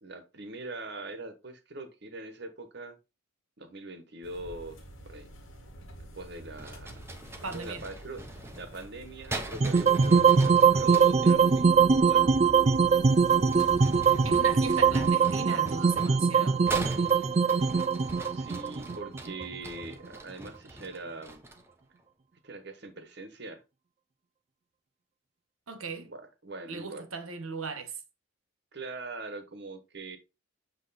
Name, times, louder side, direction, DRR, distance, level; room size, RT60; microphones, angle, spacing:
voice 1, 0.0-3.0 3.6-4.8 5.0-5.3 6.1-6.9 7.5-11.6 12.0-12.3 14.0-14.8 18.2-21.4 22.4-23.6 26.1-27.1 28.7-30.2, right 2 dB, 55° right, 1.1 m, -42 dB
sound 1, 4.2-15.1, right 1 dB, 70° left, 1.8 m, -45 dB
sound 2, 6.5-11.4 13.1-21.7, right 1 dB, 10° right, 0.8 m, -42 dB
voice 2, 7.4-7.8 14.2-16.6 25.7-26.1 26.7-27.9, right 4 dB, 90° right, 1.3 m, -37 dB
sound 3, 9.6-19.8, right 5 dB, 30° right, 0.3 m, -22 dB
7.8 x 3.1 x 4.1 m
head